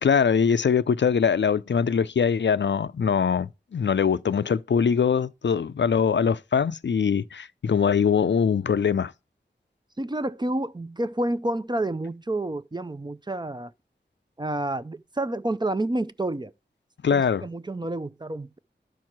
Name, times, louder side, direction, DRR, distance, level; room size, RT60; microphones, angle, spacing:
voice 1, 0.0-9.1 17.0-17.5, left 6 dB, 90° left, 0.4 m, -22 dB
voice 2, 10.0-13.7 14.4-16.5 17.1-18.6, right 1 dB, 25° right, 0.5 m, -29 dB
11.5 x 4.6 x 5.9 m
wide cardioid pair, 60°, 18 cm